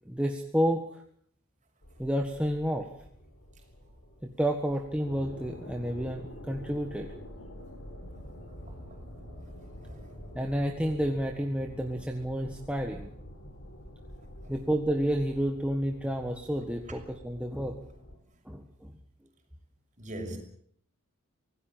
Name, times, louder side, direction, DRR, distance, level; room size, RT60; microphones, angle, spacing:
voice 1, 0.0-1.0 2.0-2.9 4.2-7.1 10.3-13.1 14.5-17.8 18.4-18.9, equal, 5° right, 1.6 m, -30 dB
sound 1, 1.8-18.2, equal, 55° left, 4.6 m, -47 dB
voice 2, 20.0-20.4, right 1 dB, 35° right, 6.1 m, -40 dB
25.0 x 18.5 x 7.5 m
head